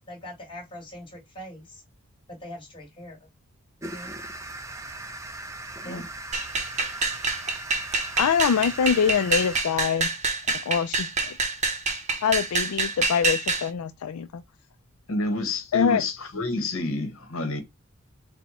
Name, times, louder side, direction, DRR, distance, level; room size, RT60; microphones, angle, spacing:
voice 1, 0.0-1.8 2.3-3.3 3.9-4.1 5.8-6.0, left 1 dB, 25° left, 1.6 m, -42 dB
sound 1, 3.8-9.6, right 2 dB, 15° right, 0.4 m, -38 dB
sound 2, 6.3-13.7, right 3 dB, 30° right, 0.7 m, -27 dB
voice 2, 8.2-10.1 10.5-11.4 12.2-14.4 15.7-16.0, left 7 dB, 85° left, 0.4 m, -24 dB
voice 3, 15.1-17.6, left 2 dB, 65° left, 1.2 m, -29 dB
4.3 x 2.2 x 4.2 m
head